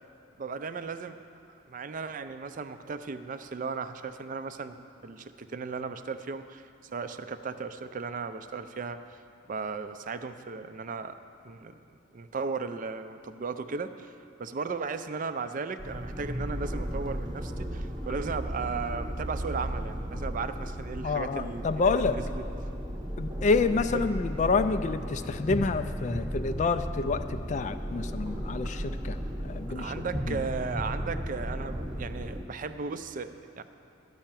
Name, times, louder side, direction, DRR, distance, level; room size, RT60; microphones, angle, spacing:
voice 1, 0.4-1.2 1.7-9.2 9.5-11.2 11.4-11.8 12.1-22.4 23.9-24.1 29.7-33.6, right 4 dB, 40° right, 10 dB, 0.4 m, -36 dB
sound 1, 15.8-32.4, equal, 20° right, 1.0 m, -35 dB
voice 2, 21.0-22.1 23.2-29.2 29.5-29.9 30.3-30.4, left 4 dB, 35° left, 10 dB, 0.3 m, -28 dB
12.0 x 5.6 x 8.9 m, 2.7 s
head